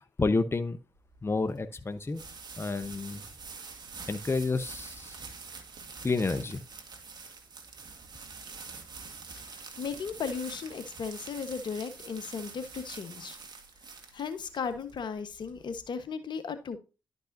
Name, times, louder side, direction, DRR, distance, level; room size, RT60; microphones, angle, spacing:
voice 1, 0.2-0.8 1.2-2.2 2.6-3.2 4.1-5.2 6.0-6.6, left 3 dB, 30° left, 0.9 m, -29 dB
sound 1, 1.0-15.9, right 4 dB, 55° right, 2.0 m, -46 dB
voice 2, 9.3-13.4 14.1-16.8, left 6 dB, 65° left, 1.2 m, -36 dB
11.5 x 5.3 x 2.7 m
supercardioid pair, 45°, 8 cm